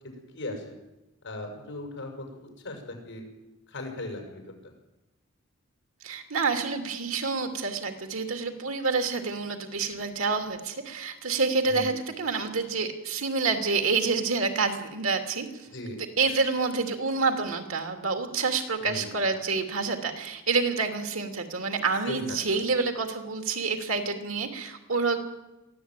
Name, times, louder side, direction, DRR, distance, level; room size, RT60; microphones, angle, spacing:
voice 1, 0.3-0.7 1.2-3.2 3.7-4.5 11.7-11.9 15.7-16.0 18.8-19.1 22.0-22.4, left 1 dB, 60° left, 3 dB, 6.4 m, -37 dB
voice 2, 6.0-15.5 16.0-25.2, right 4 dB, 90° right, 5 dB, 3.0 m, -28 dB
23.0 x 15.0 x 9.2 m, 0.98 s
head